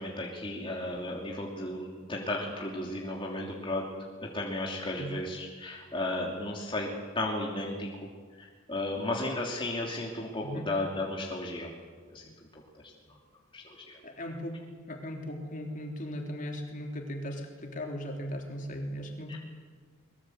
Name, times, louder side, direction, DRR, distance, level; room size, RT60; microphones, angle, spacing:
voice 1, 0.0-3.9 4.2-7.9 8.4-11.7 12.1-12.6 13.1-13.2 13.5-14.0 19.3-19.4, left 1 dB, 25° left, -2 dB, 3.1 m, -34 dB
voice 2, 14.0-14.6 14.9-19.4, equal, 40° left, 2 dB, 3.6 m, -37 dB
23.5 x 22.0 x 8.1 m, 1.5 s
head